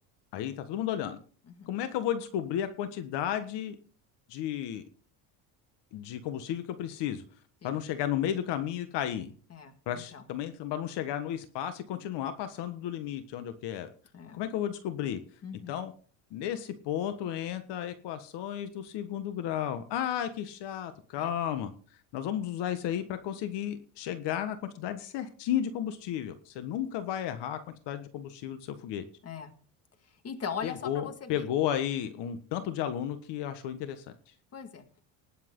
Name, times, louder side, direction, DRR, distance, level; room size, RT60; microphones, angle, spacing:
voice 1, 0.3-1.2 1.7-3.7 4.3-4.8 5.9-7.2 7.6-9.3 9.9-13.9 14.3-15.2 15.7-15.9 16.3-21.7 22.1-29.0 30.6-34.3, left 10 dB, 65° left, 9 dB, 1.5 m, -33 dB
voice 2, 9.5-10.2 14.1-14.4 15.4-15.8 21.2-21.3 29.2-29.5 30.2-31.5 34.5-34.8, left 6 dB, 35° left, 8 dB, 2.0 m, -40 dB
19.5 x 7.5 x 3.8 m, 0.41 s
cardioid pair, 130°, 44 cm